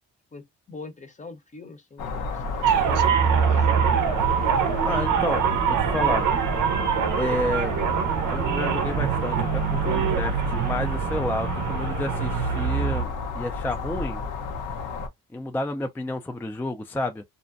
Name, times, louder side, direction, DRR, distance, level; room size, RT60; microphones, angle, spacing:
voice 1, 0.3-3.8, left 3 dB, 25° left, 0.7 m, -43 dB
sound 1, 2.0-15.1, left 4 dB, 90° left, 0.7 m, -32 dB
sound 2, 2.6-13.0, right 7 dB, 85° right, 0.6 m, -24 dB
voice 2, 4.8-6.3 7.2-7.7 8.3-14.2 15.3-17.2, left 2 dB, 5° left, 0.3 m, -30 dB
2.5 x 2.1 x 2.5 m
cardioid pair, 90°, 30 cm